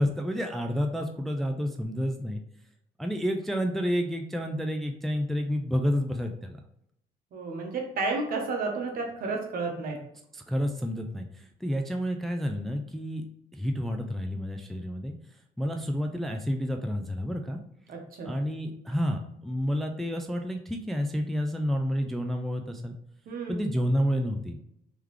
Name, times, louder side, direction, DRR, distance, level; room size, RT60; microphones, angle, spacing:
voice 1, 0.0-2.4 3.0-6.6 10.3-13.2 13.5-15.1 15.6-17.6 18.2-23.0 23.5-24.6, equal, ahead, 4 dB, 0.3 m, -29 dB
voice 2, 7.3-10.0 17.9-18.4 23.3-23.7, right 3 dB, 60° right, 1 dB, 1.2 m, -32 dB
3.6 x 3.2 x 3.3 m, 0.77 s
cardioid pair, 110°, 17 cm